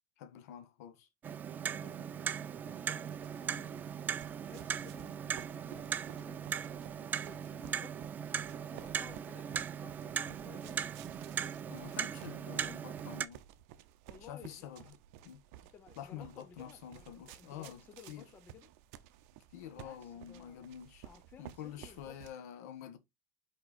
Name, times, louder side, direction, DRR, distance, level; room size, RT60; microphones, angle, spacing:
voice 1, 0.2-1.1 11.7-13.4 14.3-14.8 15.2-15.4 16.0-17.8 18.1-18.2 19.5-21.0 21.4-23.0, left 9 dB, 70° left, 1.4 m, -47 dB
Clock, 1.2-13.3, right 8 dB, 20° right, 0.4 m, -39 dB
voice 2, 1.6-3.9 4.4-8.0 8.5-10.9 14.1-15.0 15.7-18.7 19.7-20.6 21.0-22.2, left 7 dB, 20° left, 0.8 m, -57 dB
sound 1, 3.1-22.3, right 12 dB, 60° right, 0.8 m, -55 dB
5.4 x 4.6 x 4.2 m
supercardioid pair, 160°, 9 cm